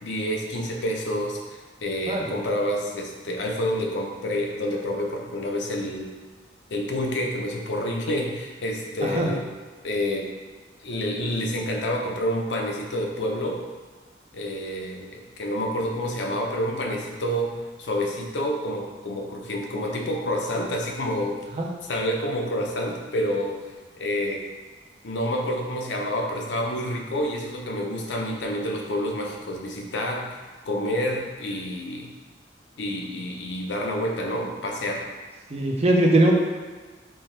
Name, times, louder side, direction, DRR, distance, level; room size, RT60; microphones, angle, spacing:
voice 1, 0.0-6.2 6.7-9.5 9.8-10.3 10.8-13.6 14.3-17.5 17.8-21.4 21.8-23.6 24.0-24.4 25.0-30.4 30.7-32.1 32.8-35.0, equal, 70° left, 0 dB, 0.7 m, -28 dB
voice 2, 35.5-36.3, right 1 dB, 35° right, 0 dB, 0.6 m, -20 dB
4.5 x 3.3 x 3.3 m, 1.4 s
head